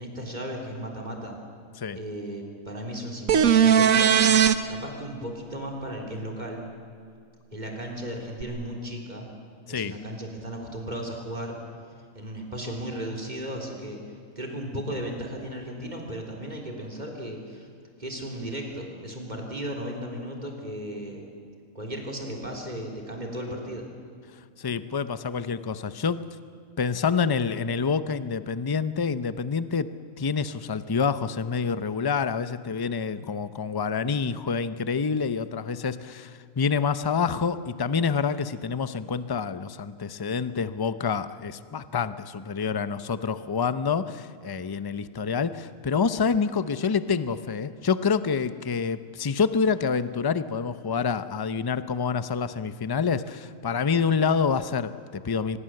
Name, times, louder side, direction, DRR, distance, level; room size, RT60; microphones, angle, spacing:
voice 1, 0.0-1.4 1.9-4.2 4.7-6.7 7.5-9.3 9.7-11.6 12.2-14.0 14.4-17.7 18.0-21.3 21.7-23.9, equal, 30° right, 0 dB, 3.7 m, -35 dB
sound 1, 3.3-4.5 8.4-8.5, right 8 dB, 80° right, 1.4 m, -18 dB
voice 2, 24.6-26.2 26.8-29.9 30.2-55.6, left 5 dB, 25° left, 13 dB, 0.5 m, -27 dB
24.5 x 21.5 x 7.8 m, 2.2 s
omnidirectional pair, 1.4 m